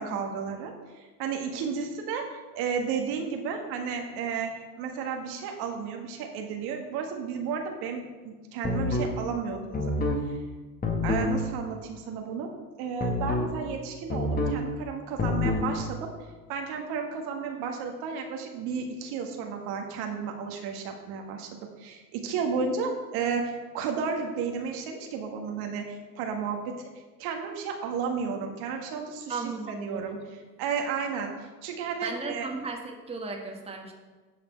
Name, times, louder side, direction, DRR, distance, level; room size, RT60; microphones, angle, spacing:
voice 1, 0.0-4.5 4.8-9.8 11.0-12.5 12.8-16.1 16.5-21.5 21.8-26.8 27.2-30.2 30.6-32.5, right 6 dB, 50° right, 3 dB, 1.6 m, -33 dB
sound 1, 8.6-9.1 9.7-10.2 10.8-11.3 13.0-13.5 14.1-14.6 15.2-15.7, left 2 dB, 20° left, 1.5 m, -27 dB
voice 2, 29.3-30.2 32.0-33.9, right 4 dB, 10° right, 1 dB, 1.4 m, -35 dB
11.0 x 5.9 x 4.4 m, 1.3 s
hypercardioid pair, 95°, 50 cm